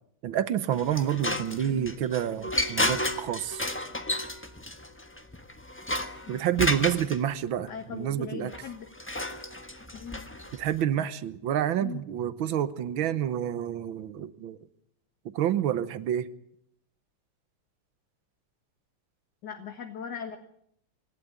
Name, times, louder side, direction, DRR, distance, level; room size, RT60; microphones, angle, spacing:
voice 1, 0.2-3.7 6.3-8.5 10.5-14.6 15.3-16.3, right 10 dB, 70° right, 15 dB, 1.7 m, -28 dB
sound 1, 0.7-7.2 8.5-10.8, left 1 dB, 10° left, 0.8 m, -32 dB
voice 2, 1.5-2.0 6.3-6.4 6.8-6.9 7.6-8.9 9.9-10.2 11.8-12.0 19.4-20.4, left 7 dB, 55° left, 5 dB, 2.0 m, -39 dB
27.0 x 12.5 x 9.5 m, 0.72 s
omnidirectional pair, 2.4 m